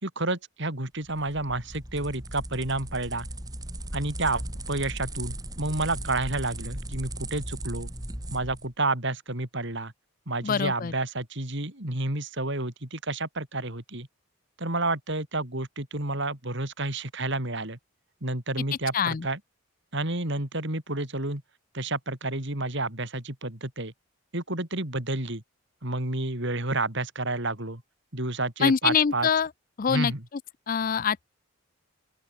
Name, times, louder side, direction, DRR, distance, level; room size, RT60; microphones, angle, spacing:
voice 1, 0.0-3.3 3.9-4.4 4.7-7.9 8.3-9.9 10.3-14.1 14.6-17.8 18.2-19.4 19.9-21.4 21.7-23.9 24.3-25.4 25.8-27.8 28.1-29.3 29.9-30.2, right 2 dB, 55° right, 3.8 m, -30 dB
sound 1, 1.0-8.7, right 1 dB, 15° right, 4.7 m, -37 dB
voice 2, 10.4-10.9 18.9-19.3 28.6-29.5 29.8-30.1 30.7-31.2, left 6 dB, 40° left, 0.4 m, -24 dB
open air
head